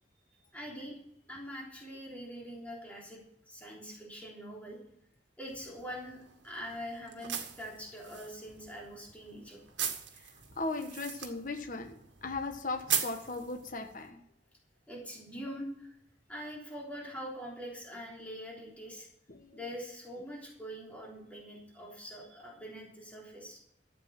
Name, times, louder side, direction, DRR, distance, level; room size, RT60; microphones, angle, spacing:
voice 1, 0.5-1.0 1.3-4.8 5.4-9.6 14.9-16.0 16.3-19.1 19.5-23.6, equal, 10° left, -4 dB, 3.5 m, -44 dB
sound 1, 5.5-14.1, right 9 dB, 85° right, 1.7 m, -40 dB
voice 2, 10.6-11.9 12.2-14.2 19.3-19.6, left 3 dB, 50° left, 4 dB, 1.3 m, -37 dB
14.0 x 8.2 x 6.0 m, 0.74 s
head